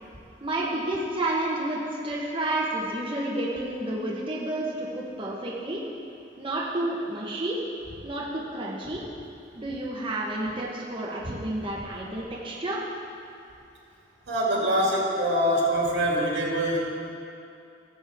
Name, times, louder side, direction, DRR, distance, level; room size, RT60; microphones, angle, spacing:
voice 1, 0.4-5.8 6.4-7.6 8.0-9.0 9.5-12.9, right 1 dB, 30° right, -5 dB, 1.1 m, -30 dB
voice 2, 14.3-16.8, equal, 80° right, -4 dB, 2.6 m, -24 dB
17.5 x 7.3 x 3.6 m, 2.6 s
head